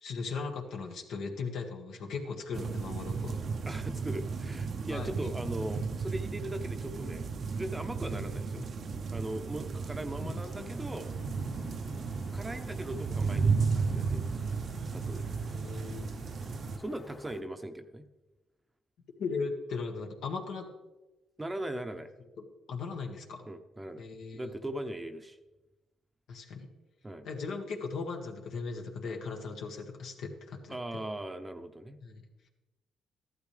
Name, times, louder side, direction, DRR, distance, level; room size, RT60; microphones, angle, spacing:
voice 1, 0.0-3.4 4.9-5.1 8.1-8.2 8.6-8.7 10.2-10.7 15.5-16.1 19.2-20.7 22.4-23.4 24.0-24.5 26.3-26.7 27.2-31.0 32.0-32.2, left 4 dB, 75° left, 2 dB, 1.7 m, -38 dB
sound 1, 2.5-16.8, right 5 dB, 50° right, 0.7 m, -34 dB
voice 2, 3.6-7.3 7.5-8.6 9.1-11.1 12.3-14.4 14.9-15.3 16.8-18.0 21.4-22.1 23.5-24.0 24.3-25.4 27.0-27.3 30.7-32.0, right 1 dB, 15° right, 7 dB, 0.8 m, -39 dB
sound 2, 10.4-17.4, left 2 dB, 35° left, 1.3 m, -52 dB
14.0 x 12.0 x 3.3 m, 1.1 s
cardioid pair, 90°, 0 cm